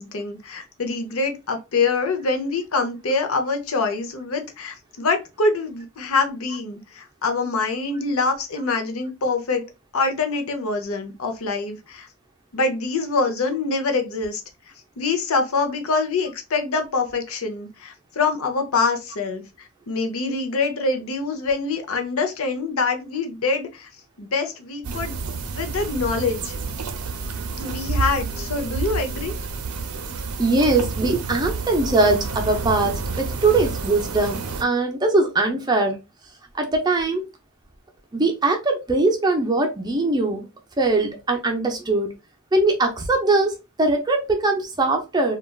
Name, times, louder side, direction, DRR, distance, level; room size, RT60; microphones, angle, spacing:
voice 1, 0.0-9.6 9.9-12.1 12.5-14.4 15.0-23.9 24.2-25.1 25.5-26.5 27.6-29.3, left 3 dB, 75° left, 0.6 m, -25 dB
sound 1, 24.8-34.6, right 4 dB, 85° right, 0.5 m, -29 dB
voice 2, 30.4-36.0 36.5-37.3 38.1-40.5 40.8-42.1 42.5-45.4, right 2 dB, 20° right, 0.4 m, -21 dB
3.2 x 2.3 x 2.2 m
head